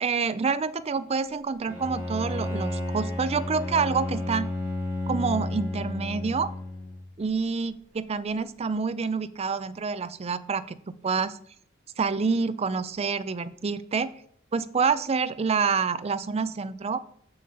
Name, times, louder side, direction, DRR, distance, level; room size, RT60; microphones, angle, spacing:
voice 1, 0.0-4.5 5.1-6.5 7.2-11.4 12.0-14.1 14.5-17.0, right 5 dB, 30° right, 14 dB, 0.4 m, -27 dB
Bowed string instrument, 1.7-7.0, left 1 dB, 10° right, 2.8 m, -32 dB
6.7 x 5.6 x 5.4 m, 0.67 s
head